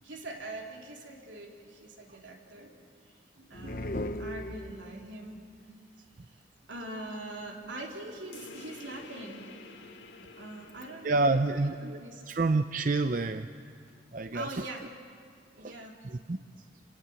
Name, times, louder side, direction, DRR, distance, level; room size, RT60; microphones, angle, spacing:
voice 1, 0.0-2.7 3.1-5.4 6.3-9.5 10.4-12.2 14.3-14.8 15.5-16.0, right 1 dB, 80° right, 0 dB, 3.6 m, -43 dB
sound 1, 3.5-5.1, left 1 dB, 50° left, 0.8 m, -36 dB
sound 2, 8.3-13.4, left 3 dB, 80° left, 2.1 m, -51 dB
voice 2, 11.0-12.0 12.3-13.5 14.1-14.7 15.6-15.8 16.0-16.4, right 3 dB, 45° right, 9 dB, 0.5 m, -28 dB
28.5 x 17.5 x 8.9 m, 2.1 s
head